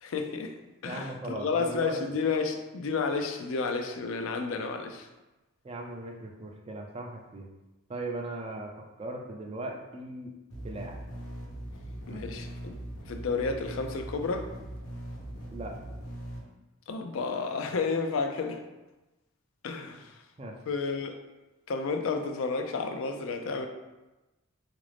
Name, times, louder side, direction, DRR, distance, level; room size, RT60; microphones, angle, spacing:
voice 1, 0.0-0.5 0.8-5.1 12.1-12.7 13.1-14.5 16.9-18.6 19.6-20.1 20.7-21.2 21.7-23.7, left 4 dB, 70° left, 5 dB, 0.4 m, -31 dB
voice 2, 0.8-2.0 5.6-7.5 7.9-11.0 12.1-12.2 15.5-15.8 20.4-20.6, right 2 dB, 25° right, 2 dB, 0.3 m, -38 dB
sound 1, 10.5-16.4, right 1 dB, 85° left, 1.0 m, -41 dB
4.0 x 2.5 x 3.2 m, 1.1 s
head